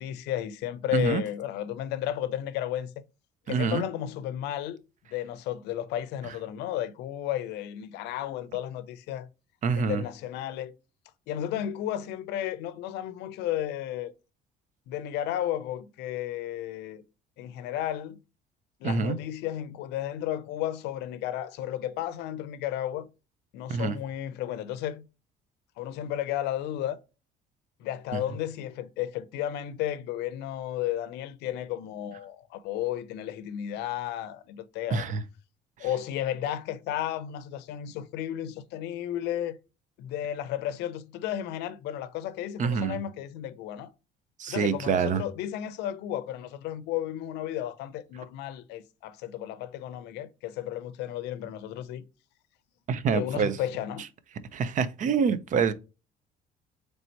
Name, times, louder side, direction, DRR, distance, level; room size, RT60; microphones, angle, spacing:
voice 1, 0.0-2.9 3.5-4.8 5.1-9.3 9.8-10.7 11.3-14.1 14.9-17.0 17.4-18.2 18.8-23.1 23.5-25.0 25.8-27.0 27.8-35.0 35.8-39.6 40.0-43.9 44.5-52.0 53.1-54.0, left 11 dB, 90° left, 0.5 m, -33 dB
voice 2, 0.9-1.2 3.5-3.8 9.6-10.0 18.8-19.2 23.7-24.0 28.1-28.2 34.9-35.2 42.6-43.0 44.4-45.2 52.9-53.6 54.5-55.7, right 6 dB, 50° right, 0.5 m, -26 dB
4.3 x 3.3 x 2.8 m
cardioid pair, 110°, 17 cm